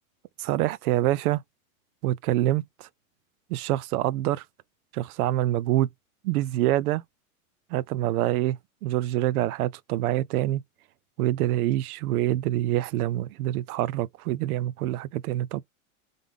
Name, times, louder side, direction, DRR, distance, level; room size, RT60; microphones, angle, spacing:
voice 1, 0.4-1.4 2.0-2.9 3.5-4.4 4.9-5.9 6.2-7.0 7.7-10.6 11.2-15.6, right 14 dB, 85° right, 0.5 m, -26 dB
3.6 x 3.4 x 3.4 m
supercardioid pair, 150°, 43 cm